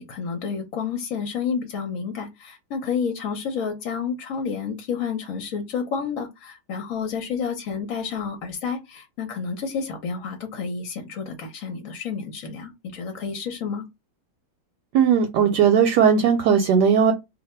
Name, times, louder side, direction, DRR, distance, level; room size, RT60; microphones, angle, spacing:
voice 1, 0.0-13.8, left 6 dB, 60° left, 1.0 m, -30 dB
voice 2, 14.9-17.1, right 7 dB, 75° right, 1.1 m, -17 dB
2.7 x 2.6 x 4.2 m
omnidirectional pair, 2.0 m